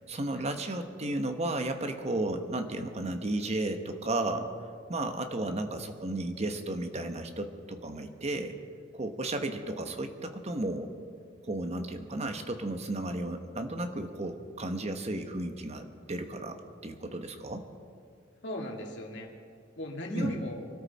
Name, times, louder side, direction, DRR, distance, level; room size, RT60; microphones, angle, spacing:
voice 1, 0.0-4.5 4.9-8.5 8.9-10.9 11.4-17.6 20.1-20.4, right 2 dB, 35° right, 7 dB, 1.1 m, -33 dB
voice 2, 18.4-19.3 19.8-20.6, left 1 dB, 70° left, 0 dB, 2.2 m, -37 dB
24.0 x 13.0 x 4.2 m, 2.2 s
head